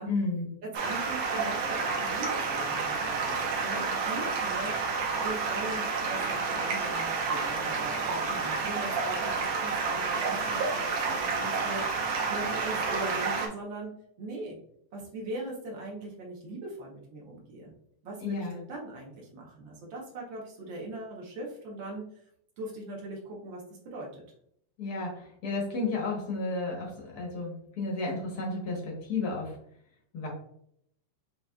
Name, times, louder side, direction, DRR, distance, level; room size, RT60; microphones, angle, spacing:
voice 1, 0.1-0.5 18.2-18.5 24.8-29.6 30.1-30.3, left 3 dB, 75° left, -2 dB, 0.8 m, -32 dB
voice 2, 0.6-4.8 5.2-14.6 14.9-17.7 18.0-22.1 22.6-24.2, right 2 dB, 85° right, -3 dB, 1.0 m, -40 dB
Stream, 0.7-13.5, right 4 dB, 65° right, 1.6 m, -30 dB
7.4 x 3.0 x 2.3 m, 0.71 s
omnidirectional pair, 3.5 m